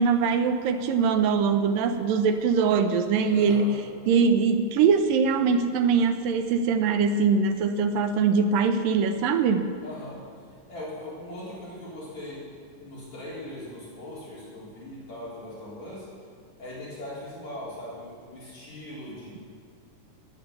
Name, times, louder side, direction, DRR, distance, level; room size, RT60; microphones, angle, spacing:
voice 1, 0.0-3.7 4.1-9.7, right 5 dB, 85° right, 7 dB, 2.6 m, -22 dB
voice 2, 3.3-3.7 9.8-10.2 10.7-12.4 12.8-16.1 16.6-19.4, left 1 dB, 55° left, -8 dB, 5.1 m, -40 dB
18.5 x 9.4 x 6.8 m, 2.4 s
omnidirectional pair, 3.9 m